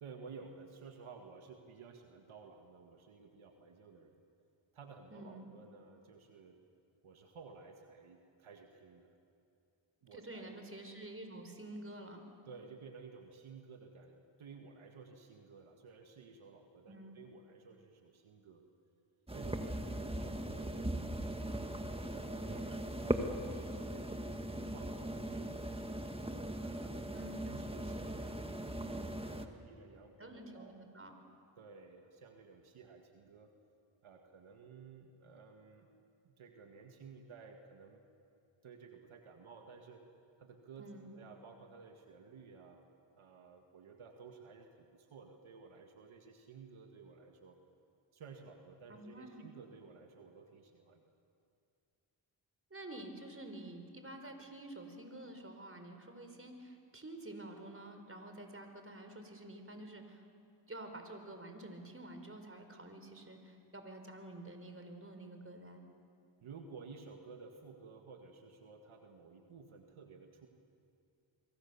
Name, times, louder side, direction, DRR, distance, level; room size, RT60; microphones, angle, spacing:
voice 1, 0.0-4.2 4.7-6.6 7.0-9.2 10.0-10.6 12.5-18.6 19.3-21.5 22.1-24.1 24.6-26.2 26.6-30.8 31.6-33.5 34.0-35.9 36.2-38.0 38.6-40.0 40.4-42.8 43.2-47.6 48.1-51.1 66.4-70.5, right 5 dB, 85° right, 4 dB, 1.9 m, -54 dB
voice 2, 5.1-5.5 10.1-12.3 16.9-17.1 27.1-27.5 30.2-31.2 40.8-41.1 48.9-49.5 52.7-60.2 60.7-65.8, right 1 dB, 25° right, 5 dB, 4.6 m, -49 dB
sound 1, 19.3-29.5, right 1 dB, 10° right, 1.9 m, -39 dB
25.0 x 24.5 x 7.1 m, 2.4 s
cardioid pair, 50°, 48 cm